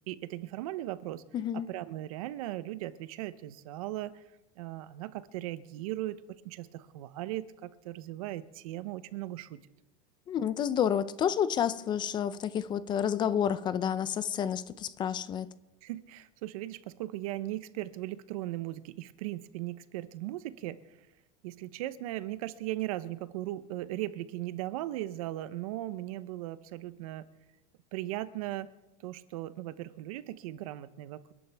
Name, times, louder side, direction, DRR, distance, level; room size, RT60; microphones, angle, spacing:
voice 1, 0.1-1.2 1.5-4.2 4.6-9.6 15.8-20.8 21.4-27.3 27.9-28.7 29.0-31.3, right 15 dB, 80° right, 0.8 m, -38 dB
voice 2, 1.3-1.7 10.3-15.5, left 9 dB, 25° left, 0.5 m, -30 dB
29.0 x 11.5 x 3.5 m
supercardioid pair, 160°, 18 cm